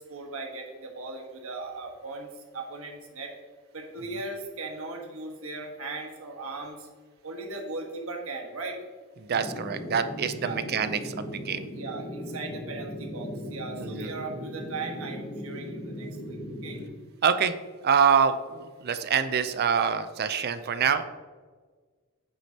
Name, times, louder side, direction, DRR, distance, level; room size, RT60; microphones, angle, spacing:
voice 1, 0.1-2.3 2.5-3.3 3.7-6.9 7.2-8.8 10.4-10.6 11.7-16.8 20.6-20.8, right 3 dB, 70° right, 2 dB, 1.4 m, -38 dB
sound 1, 9.3-16.9, equal, 40° left, 1.3 m, -38 dB
voice 2, 9.3-11.7 13.8-14.1 17.2-17.5 17.8-21.0, right 7 dB, 50° right, 11 dB, 0.5 m, -25 dB
8.4 x 6.3 x 2.9 m, 1.4 s
head